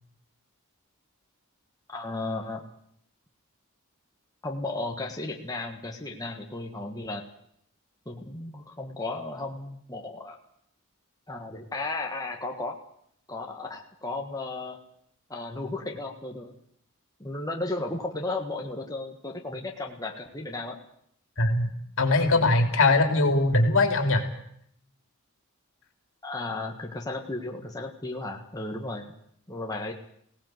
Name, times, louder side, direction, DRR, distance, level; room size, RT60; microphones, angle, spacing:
voice 1, 1.9-2.6 4.4-7.2 8.0-10.4 11.3-12.8 13.3-14.8 15.3-16.5 17.2-20.8 26.2-29.1 29.5-29.9, left 2 dB, 15° left, 1 dB, 1.6 m, -34 dB
voice 2, 21.4-21.7 22.0-24.2, left 2 dB, 65° left, 5 dB, 3.2 m, -21 dB
21.5 x 17.5 x 7.9 m, 0.70 s
head